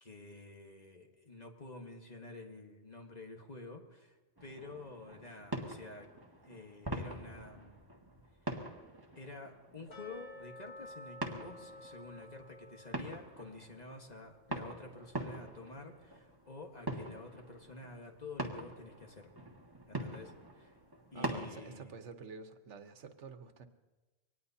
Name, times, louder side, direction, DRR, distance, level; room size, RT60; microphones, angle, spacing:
voice 1, 0.0-6.1 6.4-7.8 9.1-19.3 19.9-20.7 21.1-21.9, left 3 dB, 35° left, 2 dB, 1.5 m, -49 dB
sound 1, 4.4-21.9, right 1 dB, 20° right, 1.7 m, -44 dB
sound 2, 9.9-16.8 17.0-17.1 17.7-17.8 18.3-18.4, left 1 dB, 85° left, 4.0 m, -54 dB
voice 2, 21.1-23.7, right 5 dB, 90° right, 8 dB, 1.3 m, -49 dB
24.0 x 19.0 x 2.8 m, 1.2 s
omnidirectional pair, 1.2 m